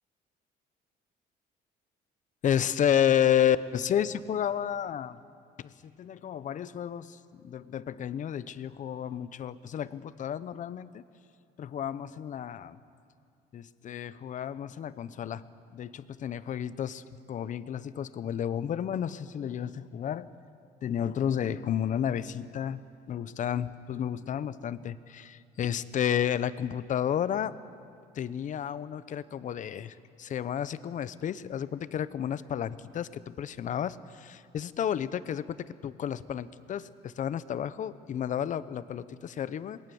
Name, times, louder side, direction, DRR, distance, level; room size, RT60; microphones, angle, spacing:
voice 1, 2.4-5.2 5.6-11.0 11.6-12.8 13.5-15.4 15.7-17.0 17.3-20.3 20.8-22.8 23.1-27.5 28.1-39.8, left 9 dB, 50° left, 15 dB, 0.8 m, -31 dB
27.0 x 21.0 x 7.1 m, 2.4 s
cardioid pair, 110°, 17 cm